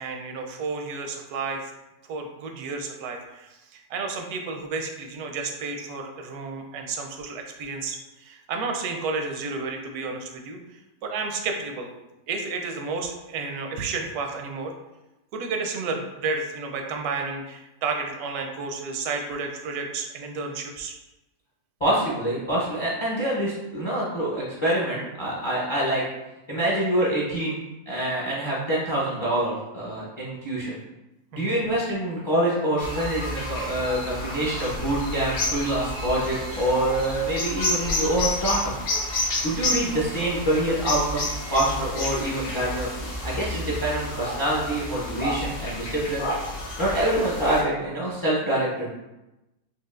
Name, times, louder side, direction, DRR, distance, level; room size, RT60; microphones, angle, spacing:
voice 1, 0.0-1.7 2.1-10.6 11.0-11.9 12.3-14.7 15.3-21.0 31.3-31.6, right 4 dB, 80° right, 3 dB, 1.1 m, -31 dB
voice 2, 21.8-26.0 26.5-27.6 27.9-30.8 31.3-38.7 39.4-42.9 43.2-46.3 46.8-48.9, right 1 dB, 35° left, -6 dB, 0.4 m, -26 dB
sound 1, 32.8-47.6, left 1 dB, 75° left, 1.4 m, -30 dB
4.6 x 2.4 x 2.4 m, 0.98 s
omnidirectional pair, 1.6 m